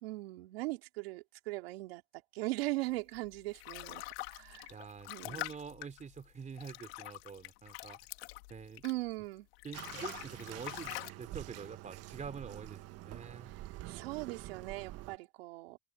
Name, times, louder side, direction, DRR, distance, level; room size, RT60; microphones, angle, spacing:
voice 1, 0.0-2.0 2.3-4.8 5.1-5.5 8.8-9.5 13.5-15.8, right 20 dB, 90° right, 3.3 m, -40 dB
sound 1, 3.1-9.2 9.5-11.1, left 21 dB, 90° left, 2.8 m, -45 dB
voice 2, 4.7-8.0 8.5-8.8 9.6-13.5, right 6 dB, 25° right, 3.7 m, -46 dB
Bathtub (filling or washing), 9.7-15.2, right 16 dB, 55° right, 1.6 m, -47 dB
open air
supercardioid pair, 115°, 30 cm